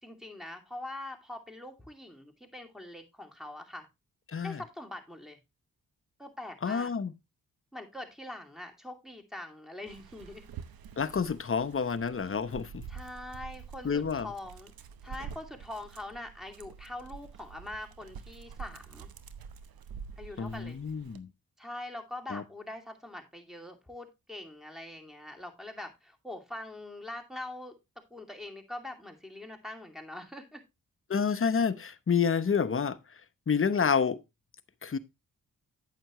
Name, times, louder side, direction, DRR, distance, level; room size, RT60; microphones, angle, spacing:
voice 1, 0.0-3.9 4.4-5.4 6.2-6.9 7.7-10.4 12.9-14.7 15.0-19.1 20.2-20.8 21.6-27.7 28.1-30.6, left 1 dB, ahead, 2.5 m, -43 dB
voice 2, 6.6-7.1 11.0-12.8 13.8-14.3 20.4-21.3 22.3-22.4 31.1-33.0 33.5-34.2 34.8-35.0, left 6 dB, 35° left, 0.9 m, -28 dB
Dog, 9.9-21.2, right 7 dB, 75° right, 0.9 m, -47 dB
8.8 x 7.6 x 3.0 m
supercardioid pair, 50°, 36 cm